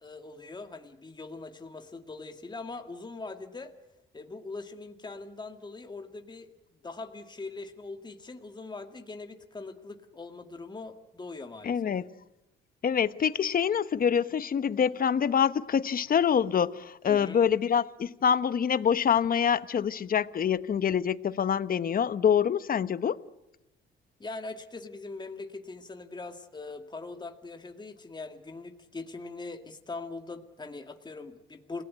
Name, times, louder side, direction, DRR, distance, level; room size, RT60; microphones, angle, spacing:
voice 1, 0.0-3.7 4.1-6.5 6.8-11.9 17.1-17.4 24.2-31.8, left 3 dB, 20° left, 2.0 m, -41 dB
voice 2, 11.6-12.1 12.8-23.2, left 8 dB, 45° left, 1.0 m, -26 dB
28.0 x 18.0 x 9.5 m
cardioid pair, 90°, 20 cm